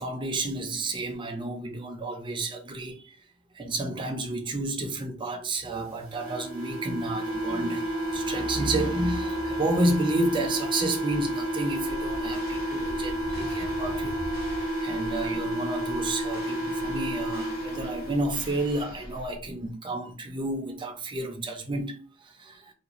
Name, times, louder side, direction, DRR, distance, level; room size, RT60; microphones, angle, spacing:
voice 1, 0.0-3.0 3.6-14.2 14.8-22.0 22.4-22.6, right 2 dB, 25° right, 0.5 m, -31 dB
sound 1, 6.1-18.2, right 1 dB, 65° right, 0.7 m, -31 dB
sound 2, 7.2-14.6, equal, 70° left, 1.2 m, -45 dB
sound 3, 11.8-19.7, left 1 dB, 45° left, 0.8 m, -44 dB
2.5 x 2.3 x 2.8 m
head